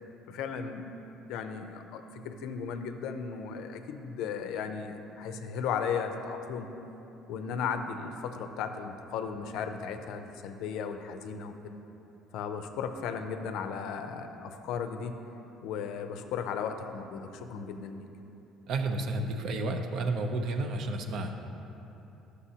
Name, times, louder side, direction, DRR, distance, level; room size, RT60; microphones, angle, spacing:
voice 1, 0.3-0.9 1.3-6.7 7.3-11.8 12.3-15.2 15.6-18.0, left 6 dB, 70° left, 7 dB, 0.5 m, -36 dB
voice 2, 18.7-21.4, right 2 dB, 50° right, 5 dB, 0.5 m, -31 dB
11.0 x 6.5 x 2.8 m, 3.0 s
cardioid pair, 165°, 0 cm